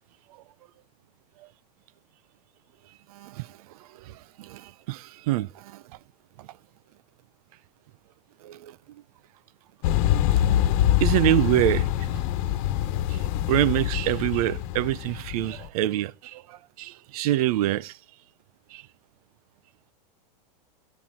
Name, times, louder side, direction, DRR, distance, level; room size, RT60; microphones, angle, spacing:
voice 1, 3.1-5.8 6.4-6.5 8.4-8.8 11.0-12.2 12.5-12.6 13.1-13.2 13.5-18.0 18.7-18.8, right 15 dB, 60° right, 0.7 m, -26 dB
sound 1, 9.8-15.7, left 12 dB, 55° left, 1.3 m, -25 dB
17.5 x 10.0 x 3.8 m
supercardioid pair, 135°, 21 cm